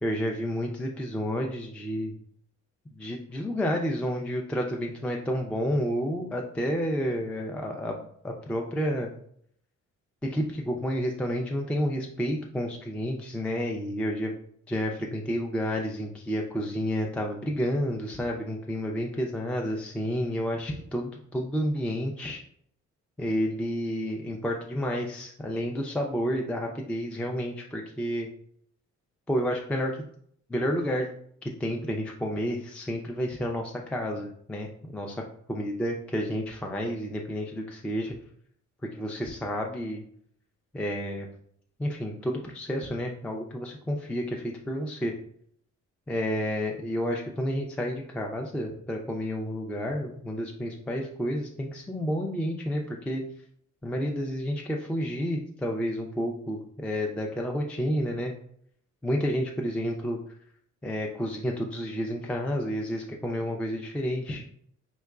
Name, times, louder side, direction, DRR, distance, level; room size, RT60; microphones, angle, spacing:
voice 1, 0.0-2.1 3.0-9.1 10.2-14.3 14.7-22.4 23.2-28.3 29.3-30.0 30.5-31.1 31.6-35.1 35.5-38.1 38.9-40.0 40.7-41.3 41.8-45.1 46.1-53.2 53.8-58.3 59.0-60.2 60.8-64.4, equal, 5° left, 1 dB, 0.3 m, -30 dB
3.5 x 3.0 x 2.3 m, 0.64 s
cardioid pair, 90°, 30 cm